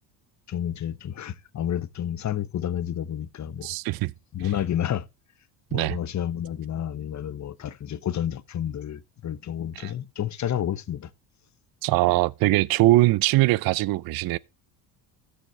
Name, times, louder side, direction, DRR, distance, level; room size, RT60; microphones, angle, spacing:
voice 1, 0.5-3.7 4.3-5.1 5.7-11.1, left 10 dB, 35° left, 0.9 m, -30 dB
voice 2, 3.6-4.1 5.7-6.0 9.8-9.9 11.8-14.4, right 18 dB, 50° right, 0.5 m, -21 dB
13.5 x 6.6 x 3.2 m
supercardioid pair, 80°, 48 cm